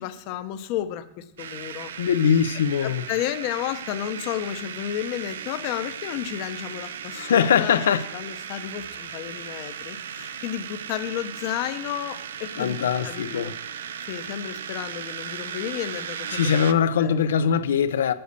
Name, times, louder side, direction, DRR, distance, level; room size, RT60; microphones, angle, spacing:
voice 1, 0.0-1.9 2.8-7.8 8.1-13.5 14.0-16.5 17.0-17.3, left 11 dB, 35° left, 0.7 m, -32 dB
sound 1, 1.4-16.7, right 8 dB, 85° right, 0.7 m, -36 dB
voice 2, 2.0-3.0 7.1-8.1 10.2-10.3 12.6-13.5 16.3-18.1, left 7 dB, 85° left, 0.7 m, -22 dB
8.1 x 7.7 x 6.8 m
supercardioid pair, 175°, 0 cm